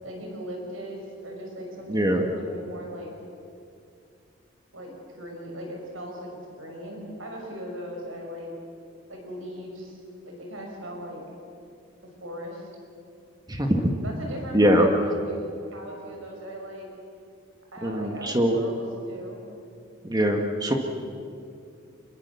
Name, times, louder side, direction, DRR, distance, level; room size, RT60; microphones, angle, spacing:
voice 1, 0.0-3.1 4.7-8.5 9.1-10.0 10.2-11.2 12.0-12.7 14.0-16.9 17.7-19.4, equal, 80° right, 1 dB, 6.0 m, -38 dB
voice 2, 1.9-2.3 13.5-13.8 14.5-14.9 17.8-18.6 20.0-20.7, equal, 20° right, 3 dB, 1.7 m, -22 dB
26.5 x 22.0 x 7.1 m, 2.5 s
head